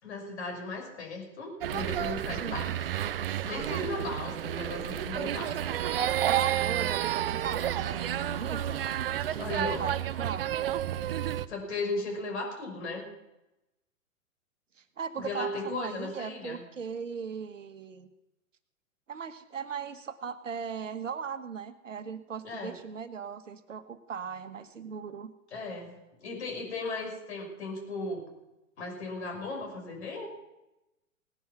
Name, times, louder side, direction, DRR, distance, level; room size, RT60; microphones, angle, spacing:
voice 1, 0.0-2.7 3.4-5.6 9.3-9.9 11.5-13.1 15.2-16.6 22.4-22.7 25.5-28.2 28.8-30.3, left 2 dB, 55° left, 3 dB, 5.5 m, -36 dB
sound 1, 1.6-11.5, right 11 dB, 45° right, 0.7 m, -31 dB
voice 2, 2.4-2.7 6.0-8.8 9.1-10.5 15.0-18.1 19.1-25.3, right 6 dB, 65° right, 12 dB, 1.4 m, -38 dB
19.0 x 10.5 x 5.7 m, 0.94 s
figure-of-eight pair, 115°, 41 cm